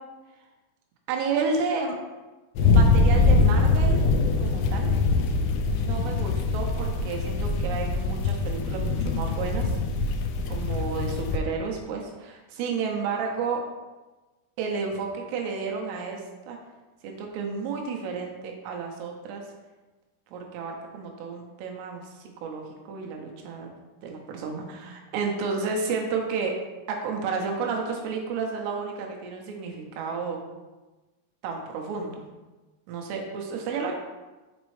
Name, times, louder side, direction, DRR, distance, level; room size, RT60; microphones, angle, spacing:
voice 1, 1.1-2.0 2.7-4.0 4.4-4.9 5.7-9.8 10.5-13.6 14.6-16.6 17.0-19.4 20.3-23.7 24.0-26.6 26.9-30.4 31.4-32.2 32.9-33.9, right 5 dB, 80° right, 1 dB, 2.6 m, -31 dB
sound 1, 2.6-11.4, left 3 dB, 85° left, 2.5 m, -23 dB
6.6 x 5.1 x 3.2 m, 1.2 s
omnidirectional pair, 5.6 m